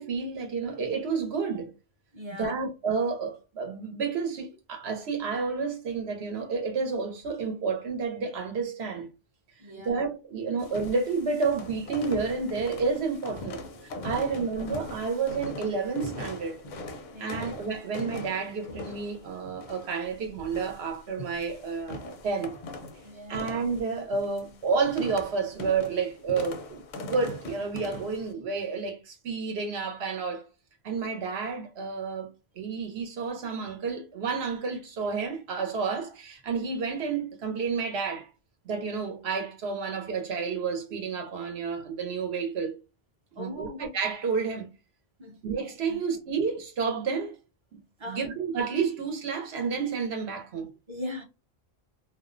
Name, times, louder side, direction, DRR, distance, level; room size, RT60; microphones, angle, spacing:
voice 1, 0.0-1.7 2.4-9.1 9.8-16.6 17.2-22.5 23.3-30.4 30.8-32.3 32.5-38.3 38.6-42.8 43.4-44.7 45.4-47.4 47.7-47.8 48.1-50.7, right 5 dB, 85° right, 1.0 m, -30 dB
voice 2, 2.1-2.5 9.6-10.0 14.2-14.4 17.1-17.5 19.8-19.9 23.0-23.5 43.4-43.8 45.2-45.4 45.9-46.0 48.0-48.2 50.9-51.2, left 1 dB, 35° right, 0.6 m, -39 dB
sound 1, 10.6-28.3, left 1 dB, 55° left, 0.6 m, -41 dB
2.4 x 2.1 x 2.4 m
omnidirectional pair, 1.0 m